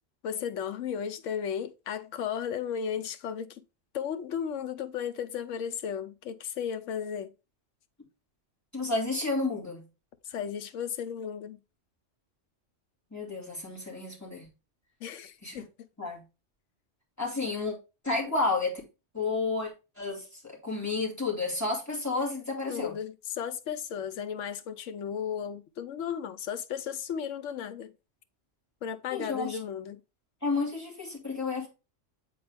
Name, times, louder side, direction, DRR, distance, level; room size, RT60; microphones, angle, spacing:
voice 1, 0.2-3.6 3.9-7.3 10.2-11.6 15.0-15.7 22.7-27.9 28.8-30.0, left 8 dB, 85° left, 1.0 m, -35 dB
voice 2, 8.7-9.8 13.1-14.5 15.4-15.6 16.0-16.2 17.2-17.7 18.0-18.8 19.1-22.9 29.1-29.6 30.4-31.7, left 3 dB, 15° left, 2.6 m, -31 dB
8.5 x 4.0 x 3.4 m
omnidirectional pair, 1.3 m